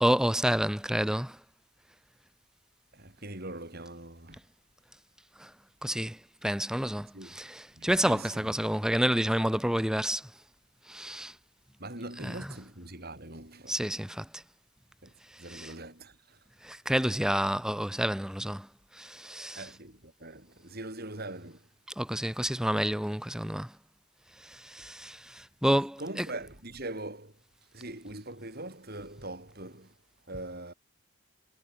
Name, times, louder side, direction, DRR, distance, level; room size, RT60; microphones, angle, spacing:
voice 1, 0.0-1.4 5.4-5.5 5.8-10.3 10.9-11.4 12.2-12.5 13.7-14.4 15.3-15.7 16.6-19.7 22.0-23.7 24.4-26.3, equal, 5° right, 0.7 m, -29 dB
voice 2, 2.9-4.4 7.1-7.4 7.8-8.3 11.8-13.8 15.0-15.1 15.4-16.4 19.6-21.6 26.0-27.3 27.7-29.9 30.3-30.7, right 2 dB, 45° right, 7.2 m, -42 dB
head